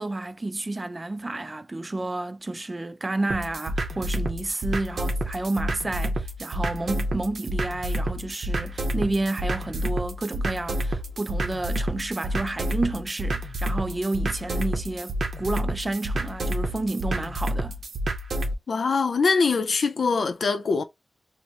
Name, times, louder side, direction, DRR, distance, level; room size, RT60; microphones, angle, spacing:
voice 1, 0.0-17.8, right 2 dB, 25° right, 0.3 m, -30 dB
sound 1, 3.3-18.5, right 1 dB, 85° right, 0.7 m, -29 dB
voice 2, 18.7-20.8, left 4 dB, 75° left, 0.5 m, -23 dB
3.0 x 2.1 x 4.1 m
wide cardioid pair, 115°, 0 cm